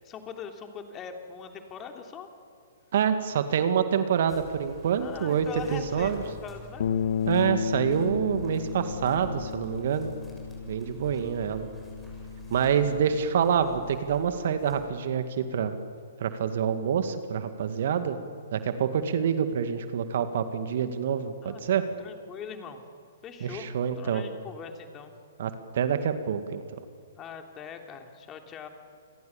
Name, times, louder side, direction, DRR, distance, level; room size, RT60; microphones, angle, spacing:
voice 1, 0.0-2.3 5.0-6.9 21.4-21.6 22.0-22.8 23.2-25.1 27.2-28.7, left 6 dB, 25° left, 5 dB, 3.0 m, -41 dB
voice 2, 2.9-6.2 7.3-10.1 10.7-11.7 12.5-15.8 16.2-18.2 18.5-21.8 23.4-24.2 25.4-26.6, right 8 dB, 55° right, 9 dB, 2.0 m, -27 dB
sound 1, 4.3-14.9, equal, 5° left, 6.8 m, -48 dB
Bass guitar, 6.8-13.0, left 7 dB, 60° left, 1.3 m, -33 dB
29.0 x 22.5 x 7.2 m, 2.3 s
figure-of-eight pair, 125°, 0 cm